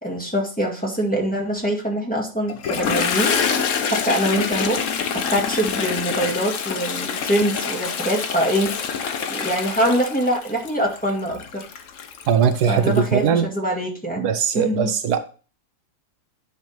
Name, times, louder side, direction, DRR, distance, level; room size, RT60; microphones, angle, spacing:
voice 1, 0.0-3.3 3.8-4.8 5.3-8.7 9.3-11.7 12.7-14.3 14.5-14.9, equal, 5° left, 2.1 m, -24 dB
Toilet flush, 2.5-13.1, left 7 dB, 55° left, 1.1 m, -26 dB
voice 2, 12.3-13.5 14.2-15.2, right 7 dB, 80° right, 1.3 m, -20 dB
10.5 x 4.1 x 4.4 m
omnidirectional pair, 1.7 m